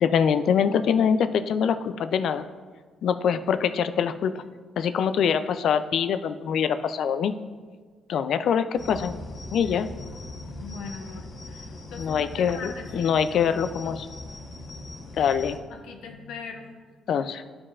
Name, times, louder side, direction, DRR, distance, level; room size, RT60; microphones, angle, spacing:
voice 1, 0.0-2.5 3.0-4.4 4.8-7.3 8.1-9.1 9.5-9.9 12.0-14.1 15.2-15.6 17.1-17.4, left 7 dB, 70° left, 11 dB, 0.3 m, -24 dB
sound 1, 8.8-15.6, left 2 dB, 50° left, 1.1 m, -40 dB
voice 2, 10.6-14.0 15.7-16.7 17.1-17.2, left 5 dB, 85° left, 4 dB, 0.8 m, -41 dB
12.0 x 4.8 x 2.4 m, 1.5 s
cardioid pair, 90°, 0 cm